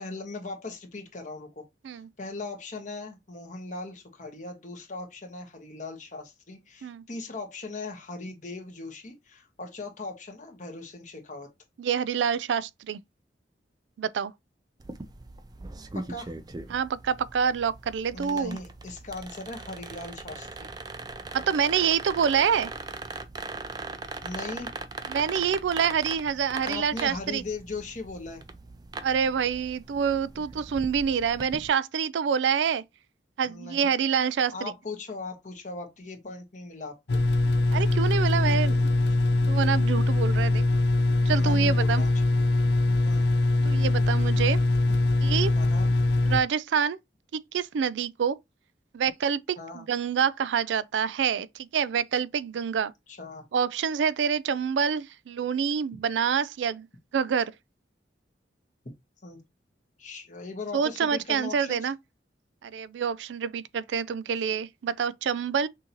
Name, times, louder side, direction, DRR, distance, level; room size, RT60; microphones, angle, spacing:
voice 1, 0.0-1.6 1.9-11.5 15.9-16.3 18.1-20.7 24.2-24.7 26.6-28.4 33.4-34.0 34.2-37.2 41.3-42.1 43.0-43.3 45.5-45.9 49.6-49.8 53.1-53.5 59.2-59.4 60.0-61.9, left 3 dB, 45° left, 1.3 m, -39 dB
voice 2, 11.8-13.0 14.0-14.3 16.7-18.6 21.3-22.7 25.1-27.4 29.0-32.8 33.4-34.7 37.7-38.9 39.5-40.6 41.3-42.0 43.6-44.6 45.2-45.5 46.3-47.0 47.3-48.4 48.9-52.9 53.5-56.9 57.1-57.5 60.7-62.0 62.6-65.7, right 7 dB, 85° right, 0.4 m, -27 dB
sound 1, 14.8-31.7, right 3 dB, 20° right, 0.4 m, -40 dB
sound 2, 37.1-46.4, left 2 dB, 70° left, 0.5 m, -22 dB
6.2 x 2.7 x 2.9 m
head